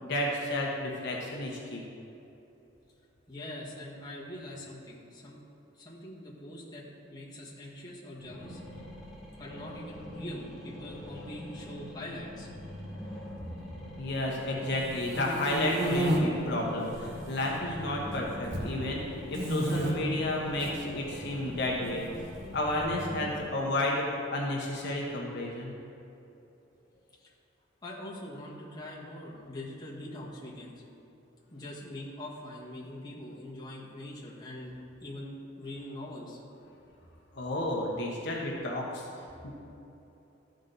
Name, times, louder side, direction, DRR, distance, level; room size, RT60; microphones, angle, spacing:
voice 1, 0.0-1.8 14.0-22.0 22.5-25.7 37.3-39.1 39.4-39.5, left 1 dB, 60° left, -3 dB, 1.2 m, -32 dB
voice 2, 3.3-5.4 5.7-8.6 9.4-12.5 27.2-27.3 27.8-30.7 31.5-34.7 35.0-36.4, left 1 dB, 20° left, -6 dB, 1.6 m, -43 dB
sound 1, 8.2-23.4, left 1 dB, ahead, 1.8 m, -44 dB
sound 2, 14.8-16.2 16.8-17.5 17.7-18.7 19.3-19.9 20.5-20.7 21.8-22.8, right 1 dB, 65° right, 1.6 m, -31 dB
13.5 x 5.2 x 4.0 m, 3.0 s
head